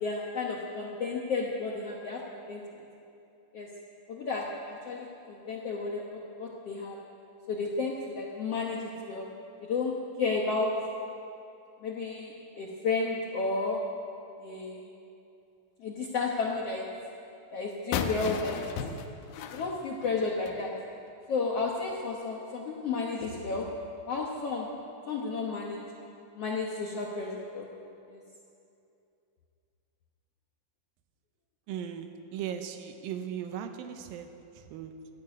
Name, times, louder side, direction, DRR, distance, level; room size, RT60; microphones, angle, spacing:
voice 1, 0.0-2.6 3.5-3.7 4.1-7.0 7.5-9.3 9.7-10.7 11.8-13.8 14.4-14.9 15.8-16.9 17.5-18.7 19.5-20.7 21.3-23.7 24.1-24.7 25.1-25.8 26.4-27.7 28.1-28.2, left 4 dB, 65° left, -2 dB, 1.5 m, -32 dB
sound 1, 17.9-20.6, left 6 dB, 85° left, 2.6 m, -35 dB
voice 2, 31.7-35.1, right 8 dB, 80° right, 7 dB, 2.5 m, -38 dB
13.0 x 11.0 x 9.3 m, 2.7 s
omnidirectional pair, 4.2 m